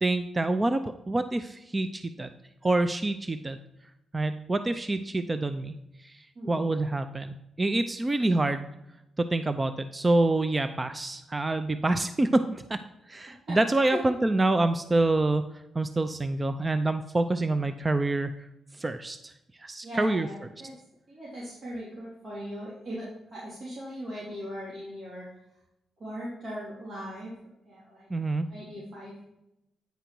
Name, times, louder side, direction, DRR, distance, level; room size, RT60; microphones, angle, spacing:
voice 1, 0.0-2.3 2.6-3.6 4.1-5.7 6.0-8.7 9.2-12.8 13.1-15.5 15.8-18.3 18.8-19.3 19.6-20.3 28.1-28.5, right 2 dB, 20° right, 10 dB, 0.4 m, -27 dB
voice 2, 13.5-14.0 19.8-20.7 21.1-25.3 26.0-27.3 27.7-29.2, equal, 50° right, -8 dB, 3.4 m, -39 dB
9.3 x 5.1 x 4.5 m, 0.88 s
cardioid pair, 100°, 0 cm